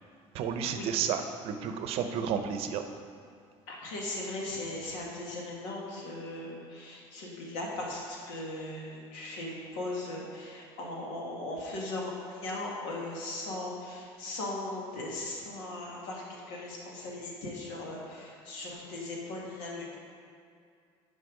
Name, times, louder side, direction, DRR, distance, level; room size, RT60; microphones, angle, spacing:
voice 1, 0.3-2.8, right 7 dB, 55° right, 7 dB, 0.7 m, -31 dB
voice 2, 3.7-20.0, left 2 dB, 90° left, -2 dB, 2.1 m, -38 dB
9.9 x 5.3 x 5.1 m, 2.3 s
cardioid pair, 145°, 12 cm